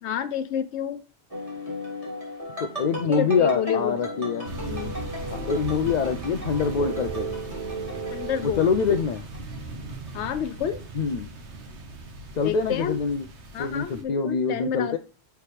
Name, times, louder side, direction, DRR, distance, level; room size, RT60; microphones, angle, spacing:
voice 1, 0.0-1.0 3.1-4.0 4.7-5.0 8.1-8.7 10.1-10.8 12.4-13.0 13.5-15.0, left 8 dB, 90° left, 12 dB, 1.0 m, -29 dB
sound 1, 1.3-9.6 9.9-10.5, right 1 dB, 30° right, 2.4 m, -35 dB
voice 2, 2.6-4.5 5.3-7.3 8.4-9.2 10.9-11.3 12.4-13.3 13.6-15.0, left 5 dB, 55° left, 7 dB, 0.5 m, -25 dB
sound 2, 4.4-14.0, right 2 dB, 90° right, 1.4 m, -38 dB
7.1 x 4.6 x 3.2 m, 0.37 s
omnidirectional pair, 1.1 m